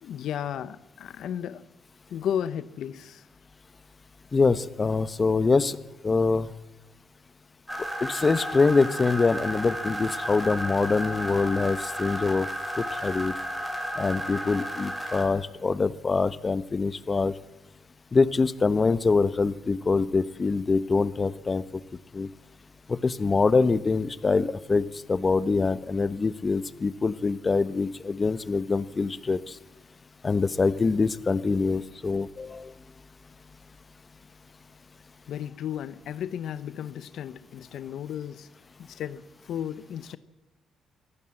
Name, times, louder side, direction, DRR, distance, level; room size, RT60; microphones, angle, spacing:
voice 1, 0.0-1.6 2.1-3.3 35.3-38.5 38.8-40.2, left 9 dB, 75° left, 15 dB, 0.8 m, -34 dB
voice 2, 4.3-5.8 6.0-6.5 8.0-12.5 12.8-13.3 14.0-17.3 18.1-21.6 22.1-22.3 22.9-29.6 30.2-32.7, left 4 dB, 30° left, 16 dB, 0.9 m, -24 dB
sound 1, 7.7-15.2, equal, 5° right, 5.5 m, -33 dB
23.0 x 15.5 x 7.7 m, 1.0 s
cardioid pair, 90°, 0 cm